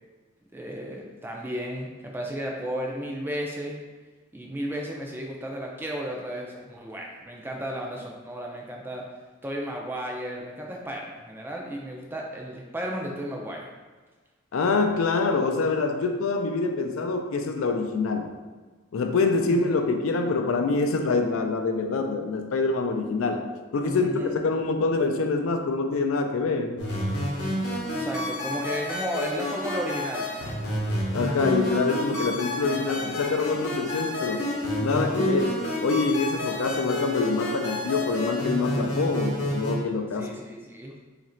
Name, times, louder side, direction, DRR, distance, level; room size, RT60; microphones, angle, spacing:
voice 1, 0.5-3.8 4.3-9.0 9.4-13.7 19.5-19.8 23.8-24.3 27.9-30.3 40.1-40.9, equal, 10° right, 0 dB, 0.3 m, -34 dB
voice 2, 14.5-18.3 18.9-26.9 31.1-34.5 34.8-40.3, left 3 dB, 70° left, 5 dB, 0.4 m, -25 dB
sound 1, 26.8-39.7, left 1 dB, 55° left, 0.8 m, -30 dB
3.0 x 2.5 x 4.2 m, 1.3 s
head